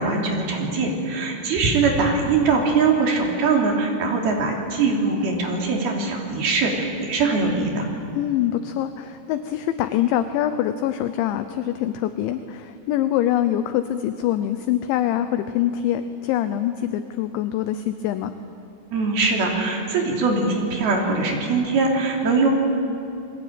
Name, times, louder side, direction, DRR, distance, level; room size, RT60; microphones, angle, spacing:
voice 1, 0.0-7.9 18.9-22.5, right 4 dB, 50° right, 0 dB, 4.8 m, -22 dB
voice 2, 8.1-18.3, left 11 dB, 80° left, 10 dB, 2.8 m, -24 dB
29.5 x 22.0 x 8.9 m, 2.7 s
omnidirectional pair, 6.0 m